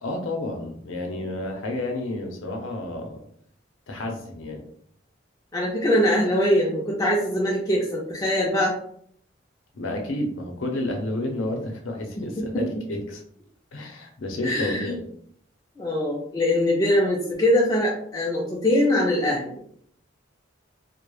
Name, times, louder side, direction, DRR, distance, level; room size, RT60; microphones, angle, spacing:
voice 1, 0.0-3.2 3.9-4.6 9.7-13.2 13.7-15.0, left 1 dB, 85° left, 3 dB, 0.6 m, -30 dB
voice 2, 5.5-8.7 12.4-12.6 14.4-14.9 15.8-19.6, left 1 dB, 20° left, -4 dB, 0.3 m, -22 dB
2.2 x 2.0 x 3.0 m, 0.65 s
head